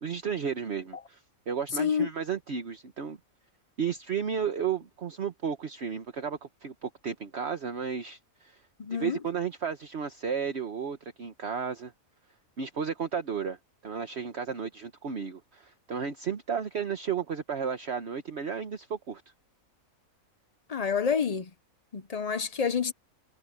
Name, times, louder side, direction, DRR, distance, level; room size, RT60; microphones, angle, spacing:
voice 1, 0.0-3.2 3.8-8.6 8.9-11.9 12.6-13.6 13.8-19.2, right 7 dB, 50° right, 1.4 m, -33 dB
voice 2, 1.8-2.1 8.8-9.2 20.7-21.5 21.9-22.9, left 6 dB, 45° left, 0.5 m, -28 dB
omnidirectional pair, 1.5 m